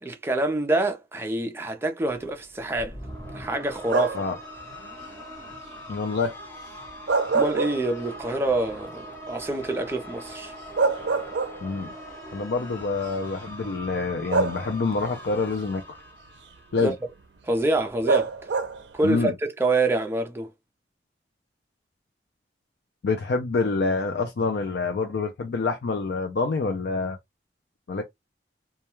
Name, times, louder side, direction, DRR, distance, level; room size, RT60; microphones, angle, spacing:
voice 1, 0.0-2.9 3.3-4.3 7.3-10.5 16.7-16.9 17.4-18.3 18.9-20.5, right 2 dB, 15° right, 0.4 m, -26 dB
sound 1, 2.7-17.1, equal, 15° left, 0.9 m, -42 dB
sound 2, 3.9-4.4 6.9-8.3 8.7-8.8 10.3-10.4 10.8-11.9 12.9-13.0 14.3-15.0 18.1-18.9, right 4 dB, 80° right, 0.5 m, -25 dB
voice 2, 5.9-6.7 11.6-11.9 12.3-16.0 16.7-16.9 19.0-19.3 23.0-27.2 27.9-28.0, left 4 dB, 65° left, 0.4 m, -27 dB
2.3 x 2.1 x 2.9 m
head